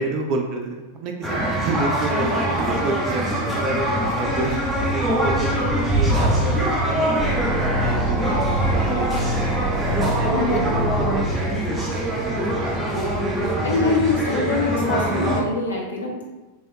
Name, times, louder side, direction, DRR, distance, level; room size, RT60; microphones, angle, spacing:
voice 1, 0.0-3.8 4.1-13.1 13.4-14.3, right 3 dB, 40° right, 2 dB, 0.4 m, -30 dB
sound 1, 1.2-15.4, right 1 dB, 5° right, 0.9 m, -23 dB
sound 2, 7.2-11.2, equal, 15° left, 0.5 m, -25 dB
voice 2, 10.3-10.6 13.6-16.2, left 3 dB, 75° left, -3 dB, 0.8 m, -24 dB
3.4 x 3.4 x 2.7 m, 1.2 s
figure-of-eight pair, 90°, 0 cm